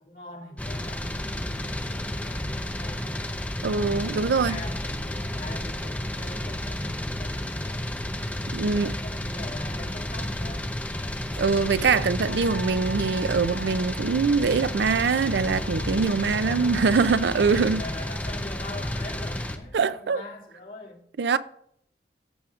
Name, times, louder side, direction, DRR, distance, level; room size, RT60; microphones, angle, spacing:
voice 1, 0.0-3.7 4.0-10.8 16.3-16.9 17.4-21.1, left 2 dB, 50° left, 2.4 m, -42 dB
sound 1, 0.6-19.6, left 1 dB, 10° left, 0.7 m, -31 dB
voice 2, 3.6-4.6 8.5-8.9 11.4-17.8 19.7-20.2 21.2-21.4, right 5 dB, 75° right, 0.4 m, -23 dB
Wind instrument woodwind instrument, 12.2-17.7, right 3 dB, 75° left, 3.1 m, -42 dB
14.0 x 6.4 x 2.4 m
head